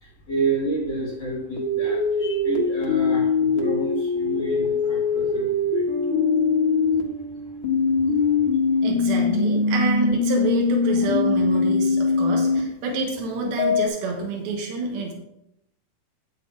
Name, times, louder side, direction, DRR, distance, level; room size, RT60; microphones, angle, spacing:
voice 1, 0.0-5.9, right 2 dB, 60° left, -1 dB, 1.2 m, -29 dB
sound 1, 1.6-7.0 7.6-12.6 13.6-13.9, left 4 dB, 90° left, 1.1 m, -22 dB
Bass guitar, 5.9-9.4, right 2 dB, 45° right, 2.4 m, -36 dB
voice 2, 8.8-15.1, right 3 dB, 75° right, 1 dB, 3.3 m, -27 dB
9.3 x 8.3 x 3.8 m, 0.80 s
omnidirectional pair, 4.5 m